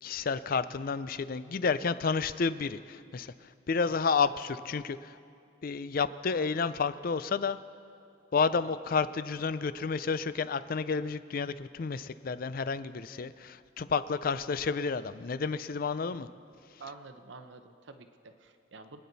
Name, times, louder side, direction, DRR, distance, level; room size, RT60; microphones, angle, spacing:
voice 1, 0.0-5.2 5.6-7.6 8.3-16.3 16.7-16.8, left 5 dB, 45° left, 14 dB, 0.4 m, -31 dB
voice 2, 16.8-19.0, right 4 dB, 65° right, 7 dB, 0.8 m, -49 dB
25.5 x 9.4 x 4.1 m, 2.4 s
head